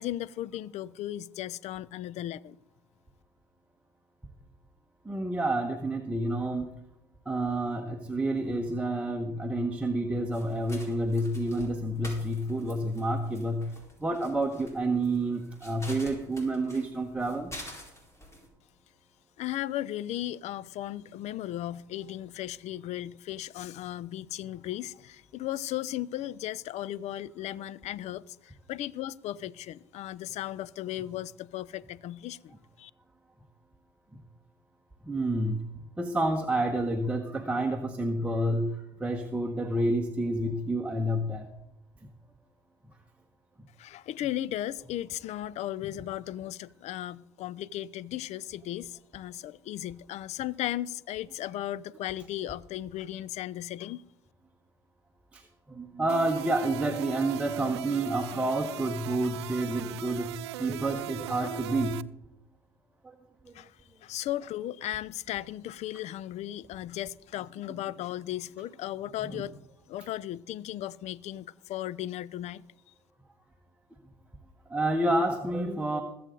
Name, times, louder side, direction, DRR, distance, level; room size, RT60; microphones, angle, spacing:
voice 1, 0.0-2.6 19.4-32.9 43.8-54.0 63.5-69.6 69.9-72.6, left 13 dB, 55° left, 0.5 m, -36 dB
voice 2, 5.0-6.7 7.2-17.5 34.1-34.2 35.0-41.5 55.3-62.0 63.0-63.1 63.5-63.6 69.3-69.4 74.7-76.0, right 1 dB, 10° right, 1.2 m, -29 dB
sound 1, 10.3-18.5, left 1 dB, 20° left, 4.5 m, -48 dB
sound 2, 56.1-62.0, right 14 dB, 85° right, 0.4 m, -38 dB
21.5 x 7.7 x 3.9 m
hypercardioid pair, 70°, 14 cm